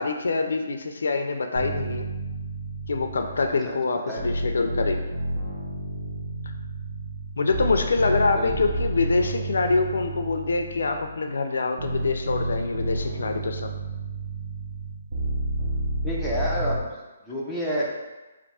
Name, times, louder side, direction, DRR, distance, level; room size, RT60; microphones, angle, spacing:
voice 1, 0.0-2.0 2.9-5.0 7.4-13.7, left 3 dB, 70° left, 6 dB, 0.4 m, -25 dB
sound 1, 1.5-3.7 4.2-11.3 11.8-16.8, right 2 dB, 35° right, 0.8 m, -31 dB
voice 2, 4.1-4.4 8.0-8.6 16.0-17.0 17.3-17.9, equal, ahead, -8 dB, 0.4 m, -29 dB
3.4 x 2.5 x 4.1 m, 1.1 s
hypercardioid pair, 175°, 0 cm